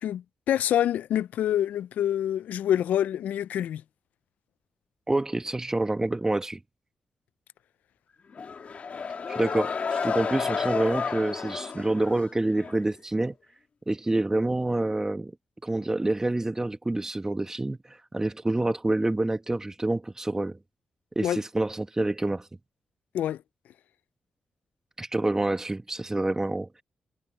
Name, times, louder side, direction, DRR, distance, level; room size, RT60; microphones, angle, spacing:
voice 1, 0.0-3.8 21.2-21.4 23.1-23.4, left 11 dB, 85° left, 0.4 m, -26 dB
voice 2, 5.1-6.6 9.3-13.3 13.9-15.3 15.6-20.6 21.1-22.5 25.0-26.8, right 2 dB, 20° right, 1.3 m, -27 dB
sound 1, 8.3-12.8, left 5 dB, 60° left, 1.7 m, -31 dB
supercardioid pair, 50°, 3 cm